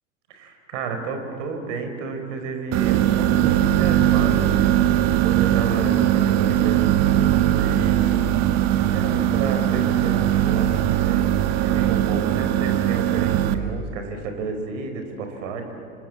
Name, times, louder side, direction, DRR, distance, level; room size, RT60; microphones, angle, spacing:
voice 1, 0.3-4.6 4.8-15.7, right 4 dB, 55° right, 5 dB, 4.9 m, -31 dB
sound 1, 2.7-13.5, right 12 dB, 35° right, 1.6 m, -20 dB
27.5 x 24.5 x 7.8 m, 2.6 s
figure-of-eight pair, 90°, 43 cm